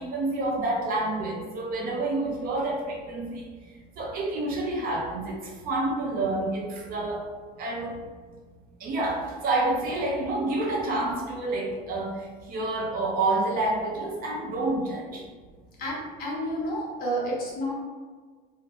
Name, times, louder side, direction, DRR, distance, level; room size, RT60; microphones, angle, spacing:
voice 1, 0.0-3.5 4.0-5.4 5.6-7.2 7.6-7.9 8.8-12.1 12.5-15.2, right 2 dB, 45° right, -1 dB, 0.6 m, -28 dB
voice 2, 15.8-17.7, equal, 45° left, -5 dB, 1.0 m, -30 dB
2.8 x 2.0 x 3.0 m, 1.5 s
supercardioid pair, 120°, 21 cm